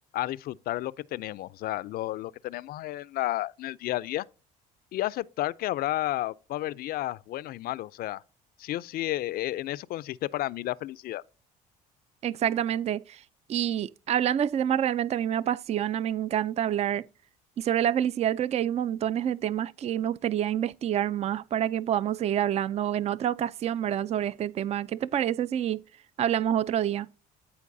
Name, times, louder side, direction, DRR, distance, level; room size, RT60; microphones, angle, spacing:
voice 1, 0.1-4.2 4.9-8.2 8.6-11.2, left 15 dB, 60° left, 0.4 m, -32 dB
voice 2, 12.2-13.2 13.5-17.1 17.6-25.8 26.2-27.1, right 10 dB, 40° right, 0.4 m, -27 dB
13.5 x 4.6 x 2.6 m
supercardioid pair, 85°, 17 cm